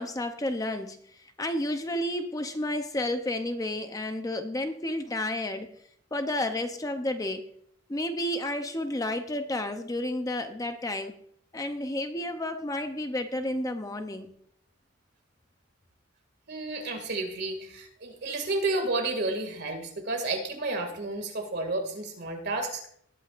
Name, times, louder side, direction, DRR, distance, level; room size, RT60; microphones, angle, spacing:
voice 1, 0.0-5.7 6.1-7.5 7.9-11.1 11.5-14.3, left 1 dB, 15° left, 7 dB, 0.6 m, -31 dB
voice 2, 16.5-22.8, right 2 dB, 55° right, 4 dB, 2.2 m, -31 dB
19.0 x 8.9 x 2.5 m, 0.66 s
head